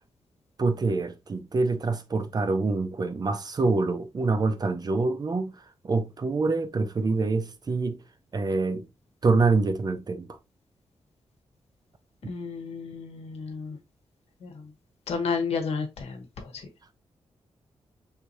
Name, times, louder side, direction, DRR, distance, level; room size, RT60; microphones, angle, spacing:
voice 1, 0.6-5.5 5.8-8.0 8.3-8.9 9.2-10.3, right 3 dB, 40° right, 0.6 m, -26 dB
voice 2, 12.3-13.8 14.4-14.6 15.1-16.2, left 5 dB, 85° left, 1.0 m, -31 dB
4.6 x 3.3 x 2.7 m
cardioid pair, 95°, 10 cm